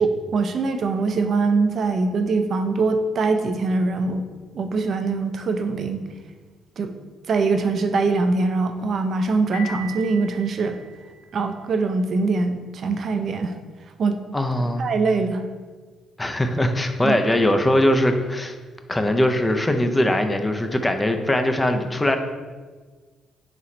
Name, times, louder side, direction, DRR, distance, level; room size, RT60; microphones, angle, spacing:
voice 1, 0.0-4.2 4.5-6.0 6.8-6.9 7.3-10.8 11.3-13.5 14.0-14.2 14.8-15.4 17.0-17.1, right 3 dB, 55° right, 6 dB, 0.4 m, -22 dB
Piano, 9.5-11.5, equal, 85° left, 0.5 m, -39 dB
voice 2, 14.3-14.9 16.2-18.6 18.9-22.2, left 1 dB, 15° left, 6 dB, 0.5 m, -21 dB
4.0 x 3.0 x 4.2 m, 1.4 s
cardioid pair, 90°, 0 cm